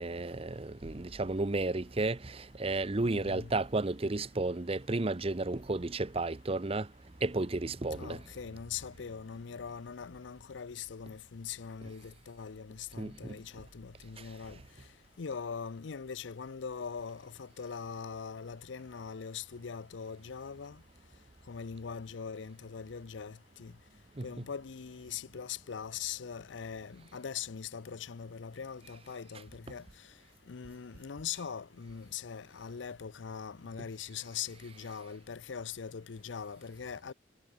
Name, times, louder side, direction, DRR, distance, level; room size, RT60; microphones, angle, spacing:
voice 1, 0.0-6.9 7.2-8.2 13.0-13.4 24.2-24.4, right 2 dB, 30° right, 0.8 m, -33 dB
voice 2, 3.0-3.5 7.9-14.6 15.2-20.8 21.5-23.7 24.2-30.1 30.5-37.1, left 6 dB, 80° left, 0.6 m, -42 dB
head